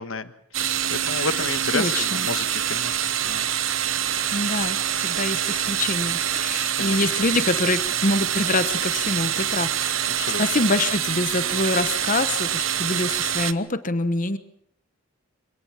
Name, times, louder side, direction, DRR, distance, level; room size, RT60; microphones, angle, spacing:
voice 1, 0.0-3.5 6.8-7.0 10.2-10.6, left 4 dB, 65° left, 11 dB, 1.4 m, -31 dB
sound 1, 0.5-13.5, right 10 dB, 65° right, 1.0 m, -25 dB
voice 2, 1.7-2.3 4.3-9.9 10.4-14.4, left 2 dB, 40° left, 11 dB, 1.1 m, -25 dB
25.0 x 18.0 x 7.3 m, 0.70 s
head